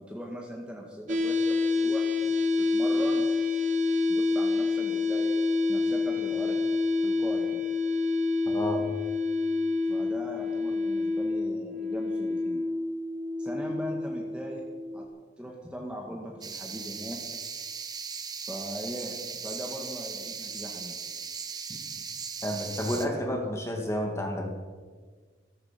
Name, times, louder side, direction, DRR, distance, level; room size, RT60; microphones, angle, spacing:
voice 1, 0.0-3.2 4.0-5.4 5.7-6.6 7.0-7.6 8.5-8.6 9.8-12.6 13.4-14.6 14.9-15.1 15.4-17.2 18.5-21.0 21.7-22.1, equal, 5° right, -1 dB, 1.9 m, -40 dB
sound 1, 1.1-15.0, left 3 dB, 45° right, 1.4 m, -28 dB
voice 2, 8.5-8.9 22.4-24.5, equal, 15° left, 1 dB, 2.5 m, -30 dB
sound 2, 16.4-23.1, right 6 dB, 25° right, 1.0 m, -38 dB
16.0 x 14.5 x 6.0 m, 1.5 s
head